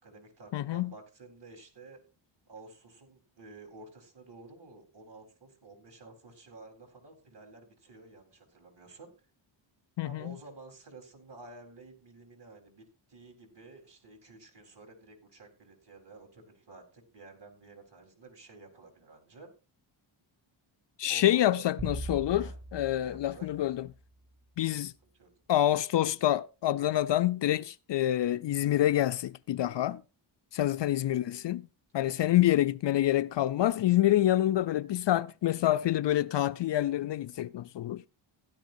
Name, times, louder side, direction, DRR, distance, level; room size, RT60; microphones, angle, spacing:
voice 1, 0.0-2.0 2.5-9.1 10.0-19.5 21.1-21.7 22.3-22.6 23.0-23.5 25.0-25.4 30.5-30.9 31.9-32.3, right 3 dB, 55° right, 4.2 m, -52 dB
voice 2, 0.5-0.9 10.0-10.3 21.0-23.9 24.6-24.9 25.5-30.0 30.5-31.7 31.9-38.0, left 13 dB, 60° left, 0.5 m, -27 dB
sound 1, 21.8-24.3, right 2 dB, 40° right, 5.1 m, -41 dB
16.0 x 11.0 x 2.7 m
wide cardioid pair, 100°, 49 cm